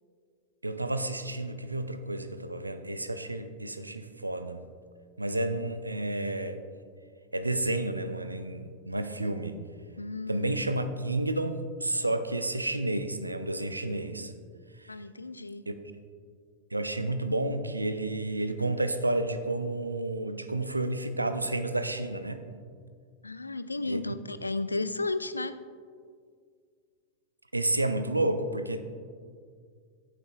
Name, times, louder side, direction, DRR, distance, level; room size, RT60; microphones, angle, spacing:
voice 1, 0.6-4.7 5.2-6.6 7.3-9.6 10.3-14.3 14.8-14.9 15.7-15.8 16.7-22.4 23.8-24.0 27.5-28.8, right 2 dB, 85° right, 10 dB, 0.5 m, -31 dB
voice 2, 10.0-10.5 14.9-15.7 23.2-25.6, left 3 dB, 80° left, 14 dB, 0.3 m, -33 dB
14.5 x 9.2 x 2.3 m, 2.1 s
figure-of-eight pair, 90°, 0 cm